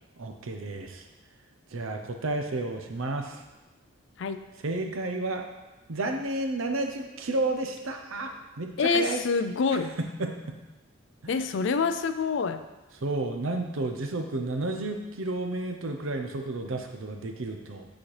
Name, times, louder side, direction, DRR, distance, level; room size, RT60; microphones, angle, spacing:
voice 1, 0.2-1.0 1.7-3.4 4.6-5.4 5.9-9.2 10.2-10.6 13.0-17.9, right 2 dB, 70° right, 5 dB, 0.6 m, -31 dB
voice 2, 8.8-9.9 11.3-12.6, left 5 dB, 55° left, 10 dB, 0.3 m, -26 dB
8.5 x 4.1 x 3.2 m, 1.1 s
head